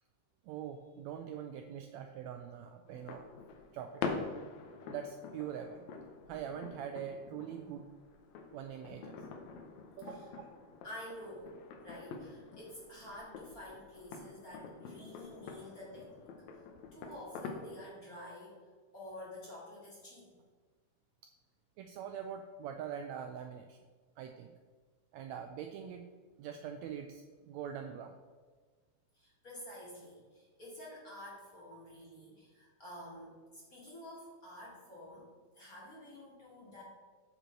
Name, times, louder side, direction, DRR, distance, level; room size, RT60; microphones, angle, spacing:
voice 1, 0.4-3.3 3.7-4.1 4.9-5.9 6.3-7.9 8.5-9.1 10.0-10.4 21.8-23.8 24.2-24.5 25.1-26.1 26.4-28.2 31.7-31.8, right 8 dB, 85° right, 5 dB, 1.6 m, -43 dB
sound 1, 2.9-17.9, left 5 dB, 70° left, 2.0 m, -46 dB
voice 2, 10.0-10.3 10.8-11.5 11.8-16.3 16.5-16.6 16.9-18.6 18.9-20.3 29.1-35.3 35.5-36.8, left 1 dB, 30° left, -6 dB, 2.1 m, -49 dB
8.1 x 6.9 x 4.5 m, 1.4 s
omnidirectional pair, 3.7 m